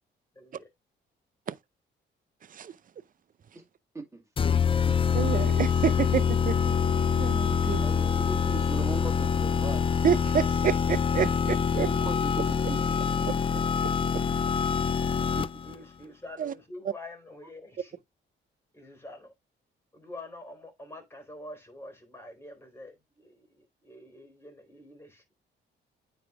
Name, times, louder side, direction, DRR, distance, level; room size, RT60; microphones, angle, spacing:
voice 1, 0.3-0.7 15.3-18.0 18.7-19.3 19.9-25.2, left 1 dB, 10° left, 3.8 m, -46 dB
sound 1, 4.4-15.7, left 7 dB, 25° left, 0.4 m, -25 dB
voice 2, 5.1-6.8 7.2-7.9 10.0-11.9 13.3-13.6 14.1-14.2 16.4-16.5, right 8 dB, 45° right, 0.6 m, -29 dB
voice 3, 7.8-9.9 11.8-13.0 15.4-15.5, right 2 dB, 15° right, 2.4 m, -38 dB
9.4 x 3.5 x 3.6 m
cardioid pair, 90°, 20 cm